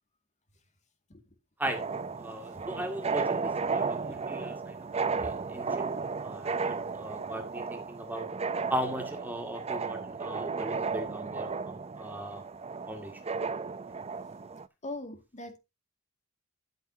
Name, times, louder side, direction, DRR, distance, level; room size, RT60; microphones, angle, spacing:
sound 1, 1.7-14.7, right 4 dB, 30° right, 0.5 m, -34 dB
voice 1, 2.2-8.3 8.7-12.4 12.9-13.1, equal, 10° right, 2.1 m, -38 dB
voice 2, 14.8-15.6, left 2 dB, 35° left, 2.1 m, -40 dB
13.0 x 8.3 x 2.8 m
head